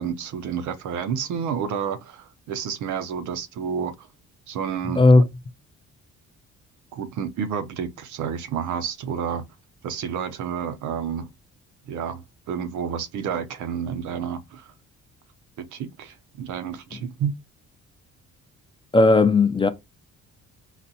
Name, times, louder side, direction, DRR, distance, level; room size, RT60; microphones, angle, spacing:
voice 1, 0.0-4.1 4.5-5.0 6.9-9.4 9.8-11.3 11.9-14.7 15.6-17.3, right 7 dB, 75° right, 0.6 m, -30 dB
voice 2, 18.9-19.7, left 3 dB, 15° left, 0.4 m, -15 dB
4.0 x 2.2 x 2.8 m
cardioid pair, 90°, 30 cm